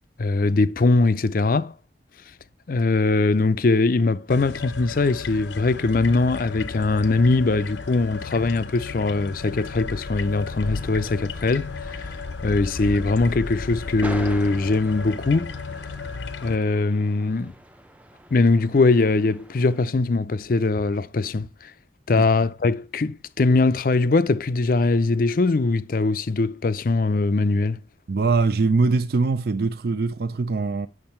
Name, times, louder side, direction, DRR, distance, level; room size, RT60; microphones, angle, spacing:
voice 1, 0.2-1.7 2.7-15.5 16.4-17.5 18.3-21.7 22.1-27.8, left 3 dB, 50° left, 0.5 m, -21 dB
sound 1, 4.3-16.6, left 4 dB, 80° left, 0.8 m, -34 dB
sound 2, 10.4-19.8, right 1 dB, 5° right, 0.5 m, -43 dB
voice 2, 28.1-30.9, right 4 dB, 55° right, 0.4 m, -22 dB
8.8 x 6.4 x 4.4 m
head